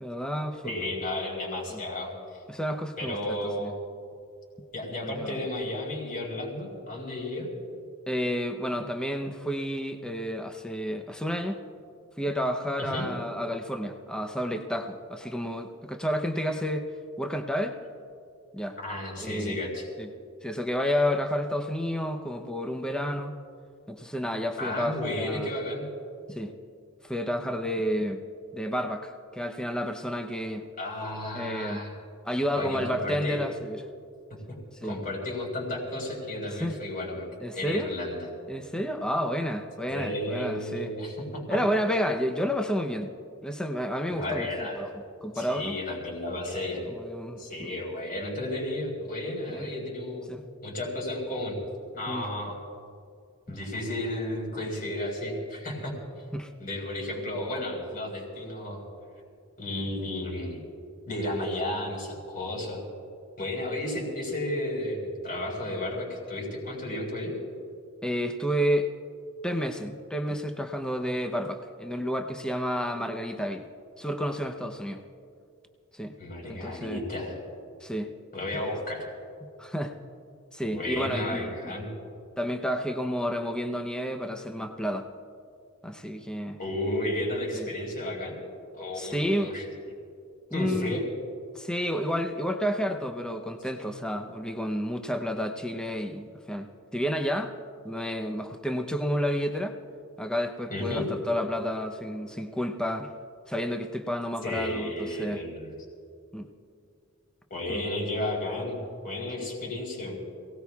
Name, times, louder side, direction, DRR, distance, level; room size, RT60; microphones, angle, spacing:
voice 1, 0.0-0.8 1.7-1.8 2.5-3.7 4.9-5.3 8.1-11.6 12.2-16.8 17.2-17.8 18.5-18.8 19.2-19.6 20.0-20.1 20.4-23.3 23.9-25.5 26.3-26.5 27.1-28.2 28.5-30.7 31.3-31.8 32.2-33.8 34.8-35.0 36.6-36.8 37.4-37.9 38.5-40.9 41.5-43.1 43.4-44.5 44.7-45.8 46.9-47.7 49.5-49.7 50.3-50.5 52.1-52.3 53.5-53.6 56.3-56.5 68.0-68.9 69.4-73.6 74.0-75.0 75.9-76.1 76.4-77.0 77.8-78.1 79.6-79.9 80.5-81.5 82.4-85.1 85.8-86.6 87.5-87.7 89.0-89.5 90.5-91.0 91.5-97.5 97.8-99.8 100.2-103.1 103.5-105.4 106.3-106.5 107.7-107.8, equal, 5° left, 5 dB, 0.7 m, -30 dB
voice 2, 0.6-2.1 3.0-3.7 4.7-7.5 12.9-13.1 18.8-19.9 24.6-25.8 30.8-31.9 32.5-33.4 34.5-34.6 34.8-37.3 37.5-38.3 39.9-41.6 44.1-44.8 45.3-46.9 47.4-50.3 50.6-51.6 51.9-52.6 53.5-55.9 56.6-58.8 59.6-60.6 61.1-62.8 63.4-67.3 76.2-77.4 78.3-79.1 80.6-81.9 86.6-88.4 88.7-89.6 90.5-91.0 100.7-101.1 104.4-105.7 107.5-108.8 109.0-110.2, left 1 dB, 45° left, -1 dB, 4.5 m, -33 dB
27.5 x 18.0 x 2.4 m, 2.4 s
head